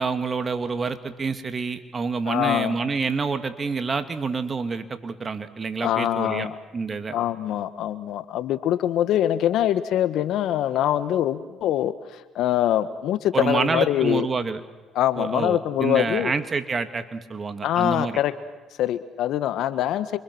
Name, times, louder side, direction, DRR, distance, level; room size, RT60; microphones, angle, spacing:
voice 1, 0.0-7.2 13.3-14.6 15.2-18.2, right 4 dB, 35° right, 9 dB, 2.5 m, -27 dB
voice 2, 2.3-2.8 5.8-6.5 7.1-11.9 12.3-14.3 14.9-16.3 17.6-18.3 18.8-20.2, left 11 dB, 70° left, 12 dB, 1.6 m, -23 dB
28.5 x 25.5 x 6.3 m, 1.2 s
supercardioid pair, 70°, 0 cm